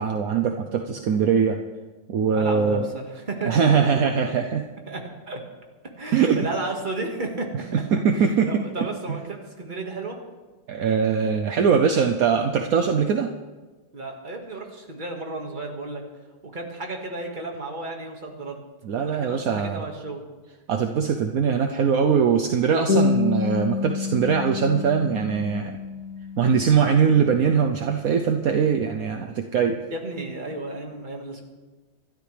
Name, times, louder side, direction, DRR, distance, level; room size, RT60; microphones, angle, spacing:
voice 1, 0.0-1.6 2.1-2.9 3.5-4.7 6.1-6.5 7.7-8.5 9.1-9.2 10.7-13.3 18.8-19.8 20.7-25.8 26.4-29.8, right 6 dB, 65° right, 5 dB, 0.9 m, -21 dB
voice 2, 2.3-4.1 4.9-5.0 5.3-5.4 6.0-7.8 8.2-10.2 13.9-16.0 16.5-18.6 19.0-20.2 29.9-31.4, right 2 dB, 25° right, 1 dB, 1.9 m, -33 dB
sound 1, 22.9-27.9, left 4 dB, 50° left, 2.4 m, -28 dB
22.0 x 13.0 x 3.4 m, 1.3 s
omnidirectional pair, 2.1 m